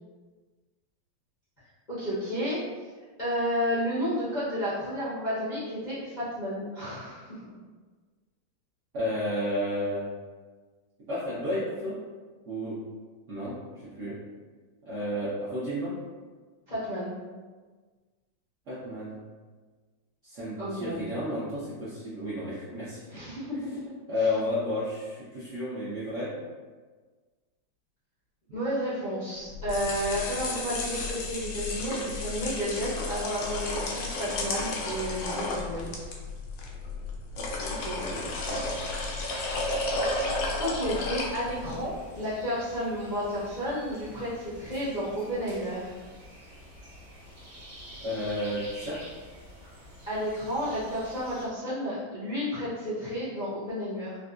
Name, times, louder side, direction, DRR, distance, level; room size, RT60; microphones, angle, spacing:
voice 1, 1.9-2.6 3.2-7.5 16.7-17.2 20.6-21.0 23.1-23.6 23.8-24.3 28.5-35.9 37.8-38.0 40.6-46.0 50.1-54.2, equal, 60° left, -12 dB, 0.4 m, -32 dB
voice 2, 8.9-10.0 11.1-12.0 12.5-12.7 13.3-13.6 13.8-14.2 14.8-15.9 18.7-19.2 20.2-23.1 24.1-26.3 37.4-38.9 48.0-49.0, left 1 dB, 70° right, -11 dB, 0.7 m, -32 dB
sound 1, 29.5-41.8, left 2 dB, 85° left, 1.5 m, -33 dB
sound 2, 37.8-51.5, equal, 50° right, 1.0 m, -47 dB
3.9 x 2.2 x 2.4 m, 1.4 s
omnidirectional pair, 2.3 m